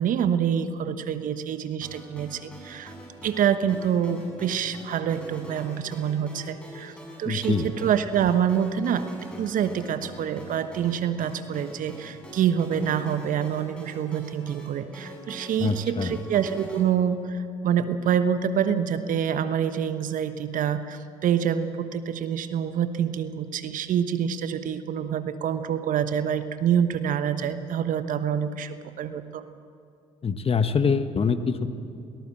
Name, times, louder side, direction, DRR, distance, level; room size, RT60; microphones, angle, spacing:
voice 1, 0.0-2.9 3.2-9.1 9.4-29.4, right 8 dB, 60° right, 11 dB, 1.2 m, -26 dB
sound 1, 1.8-16.8, equal, 5° left, 7.6 m, -44 dB
voice 2, 7.2-7.7 15.6-16.2 30.2-31.7, left 5 dB, 35° left, 10 dB, 1.3 m, -24 dB
22.0 x 18.5 x 7.7 m, 2.5 s
hypercardioid pair, 50°, 16 cm